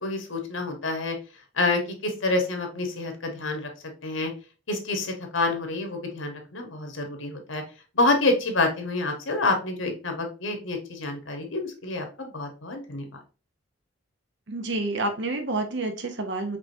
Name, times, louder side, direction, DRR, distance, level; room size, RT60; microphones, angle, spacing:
voice 1, 0.0-1.2 1.6-3.7 4.0-4.3 4.7-7.6 7.9-13.0, left 2 dB, 75° left, 4 dB, 1.2 m, -27 dB
voice 2, 14.5-16.6, right 2 dB, 60° right, 6 dB, 0.7 m, -29 dB
5.0 x 3.4 x 2.7 m, 0.34 s
head